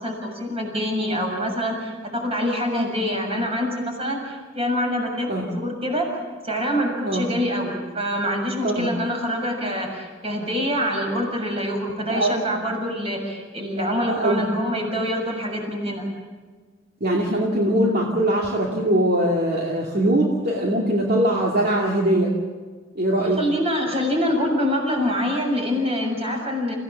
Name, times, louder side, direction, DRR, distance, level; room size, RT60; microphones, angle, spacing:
voice 1, 0.0-6.1 6.4-16.1 23.4-26.7, equal, 35° right, 1 dB, 6.8 m, -25 dB
voice 2, 12.1-12.4 13.8-14.5 17.0-22.3 23.0-23.4, right 1 dB, 55° right, -2 dB, 2.6 m, -21 dB
29.0 x 16.5 x 7.3 m, 1.4 s
head